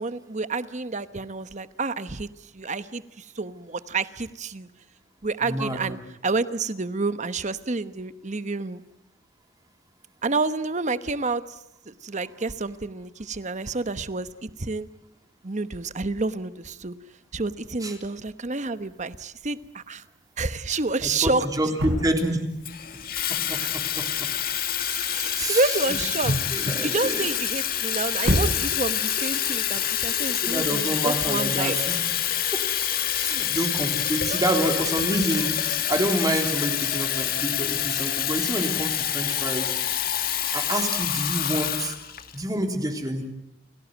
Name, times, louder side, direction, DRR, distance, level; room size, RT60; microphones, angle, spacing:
voice 1, 0.0-2.3 2.5-4.7 5.2-8.8 10.2-11.6 11.9-14.9 15.4-16.9 17.3-20.0 20.4-21.5 23.6-23.7 24.8-26.3 26.8-31.8 33.1-33.3 34.3-34.4, right 3 dB, 40° right, 13 dB, 1.1 m, -29 dB
voice 2, 5.4-5.8 17.8-17.9 21.0-22.4 23.3-24.0 25.4-25.6 26.5-27.3 30.4-32.1 32.5-32.6 33.2-39.7 40.5-41.9 42.3-43.3, right 1 dB, 20° right, 3 dB, 3.4 m, -28 dB
sound 1, 18.6-18.8 20.7-20.8 21.1-23.0 25.9-27.2 27.7-27.8 28.1-29.4, equal, 70° right, 3.9 m, -29 dB
Water tap faucet / Fill (with liquid), 22.6-42.4, left 10 dB, 50° left, 2.0 m, -27 dB
30.0 x 17.5 x 9.3 m, 0.82 s
head